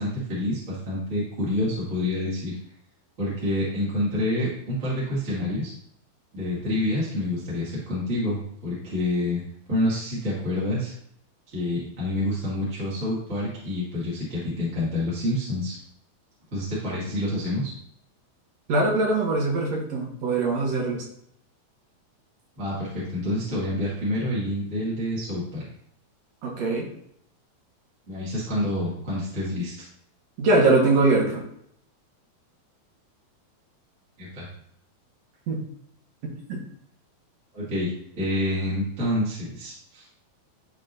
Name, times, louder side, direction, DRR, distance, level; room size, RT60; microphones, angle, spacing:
voice 1, 0.0-2.5 3.2-5.7 6.3-9.4 9.7-10.9 11.5-15.8 16.5-17.7 22.6-25.6 28.1-29.7 34.2-34.5 37.5-40.0, left 1 dB, 25° right, -8 dB, 2.0 m, -27 dB
voice 2, 18.7-21.0 26.4-26.9 30.4-31.4 35.5-35.6 36.5-36.6, right 2 dB, 55° right, -2 dB, 2.3 m, -22 dB
12.0 x 4.2 x 2.7 m, 0.70 s
omnidirectional pair, 4.2 m